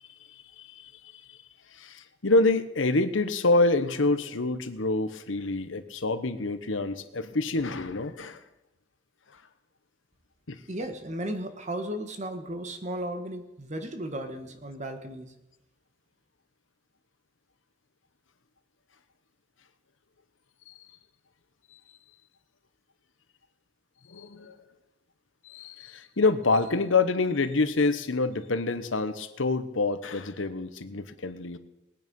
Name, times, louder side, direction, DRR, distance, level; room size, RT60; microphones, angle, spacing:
voice 1, 0.3-1.4 1.7-8.4 10.5-10.6 20.7-20.8 21.7-21.8 24.1-24.6 25.4-31.6, left 3 dB, 85° left, 11 dB, 1.1 m, -27 dB
voice 2, 10.7-15.3, right 1 dB, 35° right, 7 dB, 1.5 m, -35 dB
20.0 x 9.4 x 5.4 m, 0.92 s
head